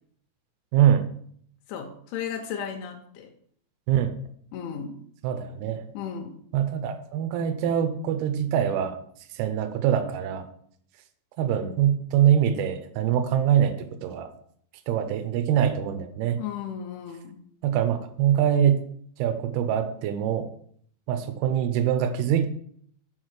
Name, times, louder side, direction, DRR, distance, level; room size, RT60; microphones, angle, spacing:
voice 1, 0.7-1.0 3.9-4.1 5.2-5.9 6.5-9.0 9.3-10.5 11.4-14.3 14.9-16.4 17.6-18.9 19.2-20.5 21.1-22.5, right 9 dB, 85° right, 9 dB, 2.2 m, -24 dB
voice 2, 1.7-3.3 4.5-5.0 5.9-6.4 16.4-17.4, left 8 dB, 80° left, 2 dB, 3.1 m, -35 dB
7.7 x 4.3 x 6.5 m, 0.62 s
omnidirectional pair, 5.5 m